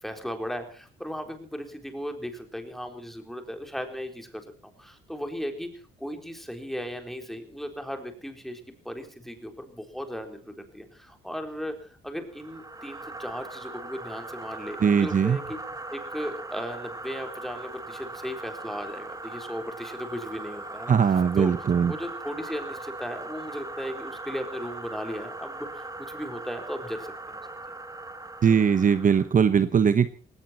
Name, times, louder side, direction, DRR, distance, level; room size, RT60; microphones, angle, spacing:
voice 1, 0.0-4.4 4.8-15.6 15.9-21.5 21.8-27.4, equal, ahead, 5 dB, 4.0 m, -36 dB
sound 1, 12.3-29.3, right 2 dB, 15° right, 1.9 m, -40 dB
voice 2, 14.8-15.4 20.9-21.9 28.4-30.1, right 7 dB, 40° right, 12 dB, 1.0 m, -20 dB
18.5 x 17.5 x 4.4 m, 0.40 s
cardioid pair, 90°, 20 cm